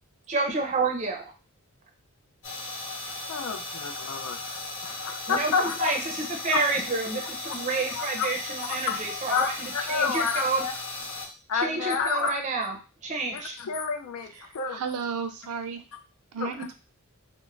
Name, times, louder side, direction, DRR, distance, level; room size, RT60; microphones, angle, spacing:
voice 1, 0.3-1.3 5.3-10.6 11.5-13.6, right 3 dB, 35° right, 1 dB, 0.5 m, -29 dB
sound 1, 2.4-11.3, left 2 dB, 55° left, 0.8 m, -36 dB
voice 2, 3.3-5.9 6.5-6.6 8.0-8.3 8.9-9.0 9.3-10.7 11.5-12.3 13.3-14.8 16.4-16.5, left 5 dB, 75° left, 5 dB, 0.4 m, -29 dB
voice 3, 14.3-15.8 16.3-16.7, right 6 dB, 85° right, 8 dB, 0.4 m, -33 dB
2.4 x 2.0 x 3.2 m, 0.32 s
head